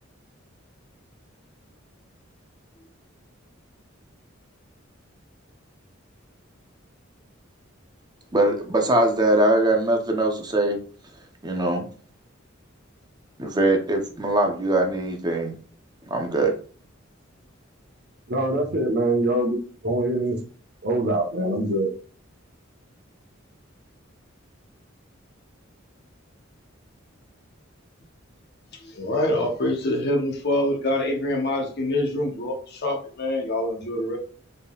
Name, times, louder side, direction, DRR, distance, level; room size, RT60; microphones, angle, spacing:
voice 1, 8.3-10.8 11.4-11.9 13.4-15.5 16.1-16.5, right 1 dB, 20° right, 0.7 m, -22 dB
voice 2, 18.3-20.4 20.8-21.9, right 1 dB, 55° right, 0.9 m, -24 dB
voice 3, 28.7-34.2, left 1 dB, 55° left, 0.9 m, -25 dB
4.0 x 3.7 x 2.4 m
head